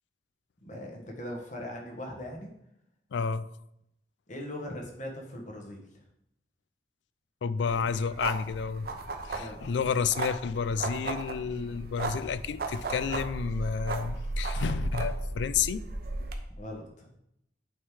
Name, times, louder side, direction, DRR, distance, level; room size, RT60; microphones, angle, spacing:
voice 1, 0.6-2.5 4.3-6.0 9.4-9.8 16.6-17.1, left 1 dB, 45° left, 0 dB, 1.3 m, -40 dB
voice 2, 3.1-3.5 7.4-8.9 9.2-15.8, left 6 dB, 85° left, 16 dB, 0.4 m, -30 dB
sound 1, 7.6-16.4, right 2 dB, 60° right, 0.8 m, -35 dB
8.8 x 3.7 x 4.8 m, 0.79 s
head